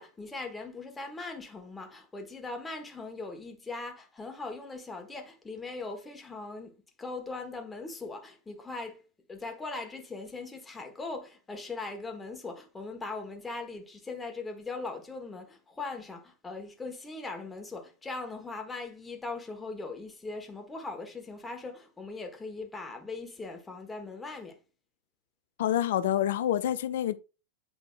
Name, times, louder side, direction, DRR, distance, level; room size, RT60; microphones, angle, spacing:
voice 1, 0.0-9.0 9.3-24.6, left 3 dB, 10° left, 1.3 m, -40 dB
voice 2, 25.6-27.2, left 11 dB, 55° left, 0.5 m, -27 dB
8.5 x 5.1 x 2.4 m
figure-of-eight pair, 90°, 0 cm